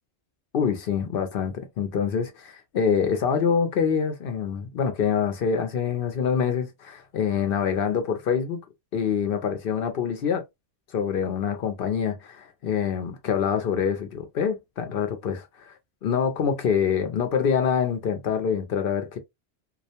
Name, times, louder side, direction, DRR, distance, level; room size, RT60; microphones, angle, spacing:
voice 1, 0.5-8.6 8.9-10.5 10.9-19.2, left 7 dB, 65° left, 0.7 m, -25 dB
2.3 x 2.1 x 2.7 m
omnidirectional pair, 1.1 m